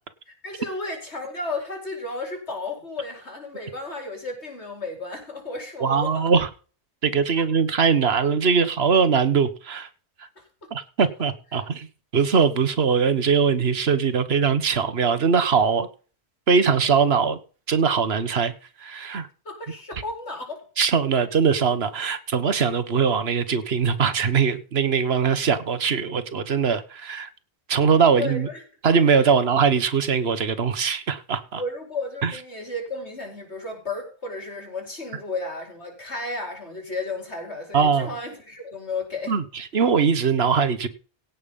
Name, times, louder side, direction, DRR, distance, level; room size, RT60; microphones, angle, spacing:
voice 1, 0.4-6.3 10.4-10.5 19.4-20.6 28.1-28.6 31.5-39.3, left 2 dB, 80° left, 3 dB, 5.1 m, -33 dB
voice 2, 5.8-6.5 7.0-9.9 10.2-10.3 10.7-11.9 12.1-15.9 16.5-17.4 17.7-18.5 18.8-19.3 20.8-27.3 27.7-28.5 28.8-31.6 32.2-32.3 37.7-38.1 39.3-40.9, right 6 dB, 65° right, 12 dB, 1.5 m, -21 dB
17.0 x 7.0 x 5.4 m, 0.38 s
omnidirectional pair, 1.1 m